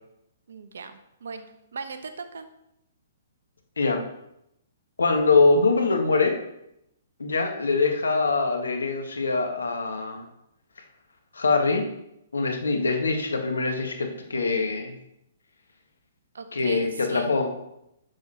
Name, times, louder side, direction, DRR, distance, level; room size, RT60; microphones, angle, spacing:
voice 1, 0.5-2.5 16.3-17.3, right 5 dB, 70° right, 9 dB, 1.1 m, -39 dB
voice 2, 5.0-6.4 7.2-10.2 11.3-11.8 12.3-14.9 16.5-17.5, left 3 dB, 80° left, 4 dB, 1.7 m, -23 dB
10.5 x 6.6 x 4.4 m, 0.81 s
figure-of-eight pair, 125°, 0 cm